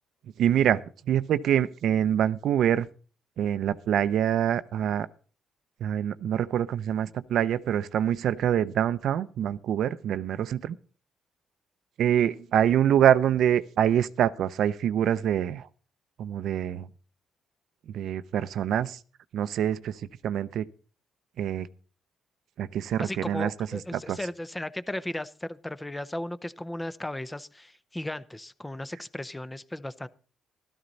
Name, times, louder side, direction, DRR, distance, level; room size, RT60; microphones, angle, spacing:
voice 1, 0.4-2.9 3.4-5.1 5.8-10.8 12.0-15.7 16.2-16.9 17.9-19.0 19.3-20.0 20.2-20.6 21.4-21.7 22.6-23.5 24.1-24.2, right 10 dB, 75° right, 0.6 m, -25 dB
voice 2, 23.0-30.1, left 1 dB, 10° left, 0.6 m, -36 dB
13.0 x 13.0 x 4.0 m
cardioid pair, 90°, 0 cm